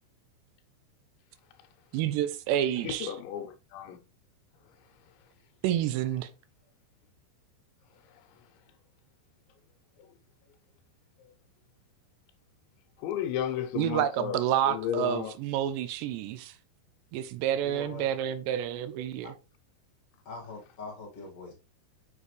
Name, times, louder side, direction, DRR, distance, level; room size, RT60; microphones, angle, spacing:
voice 1, 1.9-3.1 5.6-6.3 13.8-16.5 17.1-19.3, right 11 dB, 80° right, 2.7 m, -29 dB
voice 2, 2.8-4.0 8.1-8.2 10.0-10.1 13.0-15.3, left 10 dB, 85° left, 3.3 m, -34 dB
voice 3, 17.6-18.1 19.2-19.3 20.3-21.5, left 3 dB, 45° left, 2.1 m, -42 dB
7.5 x 6.5 x 3.2 m
omnidirectional pair, 5.1 m